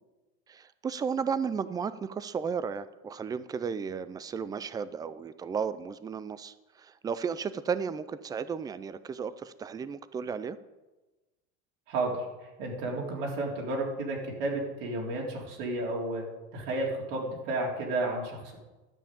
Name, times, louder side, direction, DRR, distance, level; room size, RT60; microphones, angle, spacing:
voice 1, 0.5-10.6, right 6 dB, 10° right, 15 dB, 0.4 m, -34 dB
voice 2, 11.9-16.2 16.5-18.6, right 2 dB, 65° right, -1 dB, 3.6 m, -32 dB
12.0 x 5.7 x 8.5 m, 1.1 s
supercardioid pair, 135°, 32 cm